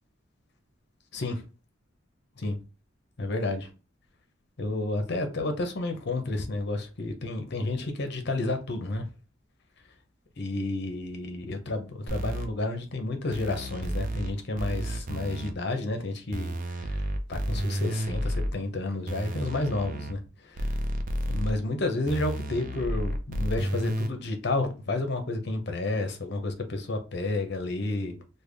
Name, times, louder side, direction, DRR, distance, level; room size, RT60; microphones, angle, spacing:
voice 1, 3.2-3.7 4.6-9.1 10.4-17.0 17.3-20.7 21.3-28.2, left 2 dB, 60° left, 0.7 m, -31 dB
sound 1, 12.1-12.5 13.3-14.3 14.6-15.5 16.3-18.5 19.1-20.1 20.6-21.5 22.1-24.1, equal, 45° right, 0.5 m, -31 dB
3.4 x 2.2 x 3.3 m
head